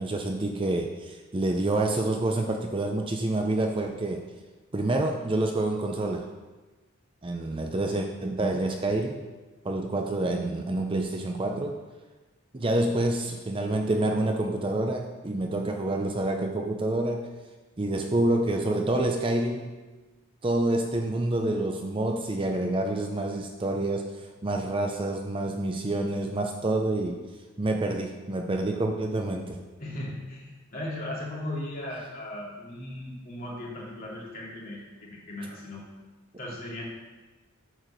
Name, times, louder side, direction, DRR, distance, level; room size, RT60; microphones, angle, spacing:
voice 1, 0.0-4.2 4.7-6.3 7.2-9.2 9.6-11.8 12.5-17.3 17.8-19.8 20.4-27.2 27.6-29.6, right 2 dB, 25° right, 2 dB, 0.5 m, -27 dB
voice 2, 29.8-35.8 36.4-36.8, left 1 dB, 40° left, -6 dB, 2.8 m, -37 dB
8.8 x 4.6 x 6.6 m, 1.2 s
head